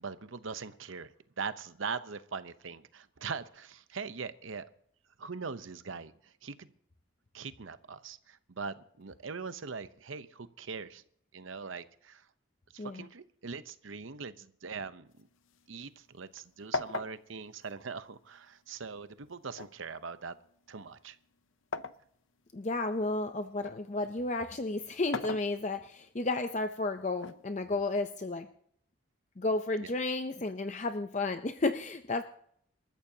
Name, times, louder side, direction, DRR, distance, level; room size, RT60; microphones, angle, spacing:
voice 1, 0.0-4.7 5.2-6.7 7.3-11.0 11.3-12.3 12.7-15.3 15.7-20.4 20.7-21.2 29.8-29.9, right 5 dB, 80° right, 0.8 m, -41 dB
sound 1, 15.1-16.4 16.7-18.7 19.5-22.1 22.6-23.8 24.9-26.0 27.2-28.2, left 4 dB, 85° left, 0.7 m, -40 dB
voice 2, 22.5-28.5 29.4-32.2, left 2 dB, 35° left, 0.6 m, -32 dB
27.0 x 14.0 x 2.8 m
head